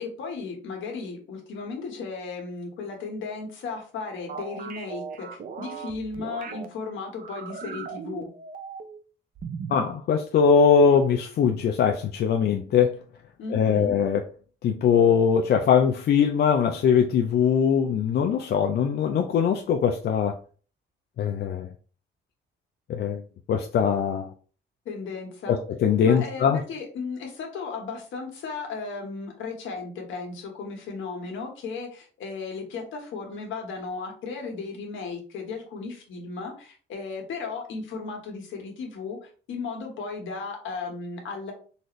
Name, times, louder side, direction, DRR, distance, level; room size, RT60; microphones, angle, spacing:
voice 1, 0.0-8.3 13.4-14.0 24.8-25.6 26.0-41.5, left 4 dB, 75° left, 1 dB, 1.3 m, -35 dB
sound 1, 4.3-6.7 7.1-9.0 9.4-9.9, right 6 dB, 45° right, 0.5 m, -38 dB
voice 2, 9.7-12.9 13.5-14.2 14.6-20.4 21.2-21.7 22.9-23.2 23.5-24.3 25.5-26.6, left 7 dB, 55° left, 3 dB, 0.4 m, -21 dB
4.0 x 2.5 x 3.0 m, 0.39 s
cardioid pair, 110°, 20 cm